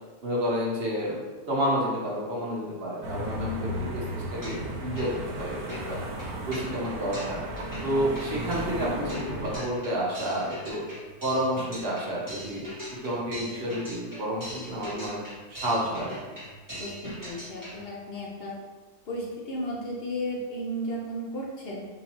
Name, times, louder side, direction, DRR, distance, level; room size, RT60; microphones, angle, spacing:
voice 1, 0.2-1.2 1.5-6.0 6.5-7.4 7.8-10.8 11.2-12.6 13.0-15.2 15.5-16.2, equal, 50° right, -5 dB, 0.8 m, -30 dB
sound 1, 3.0-9.6, right 1 dB, 85° right, 1.1 m, -34 dB
sound 2, 4.4-4.7 5.0-17.8, equal, 15° right, 1.1 m, -41 dB
voice 2, 16.8-18.5 19.0-21.9, equal, 55° left, -4 dB, 0.8 m, -34 dB
3.8 x 2.7 x 2.9 m, 1.3 s
omnidirectional pair, 1.6 m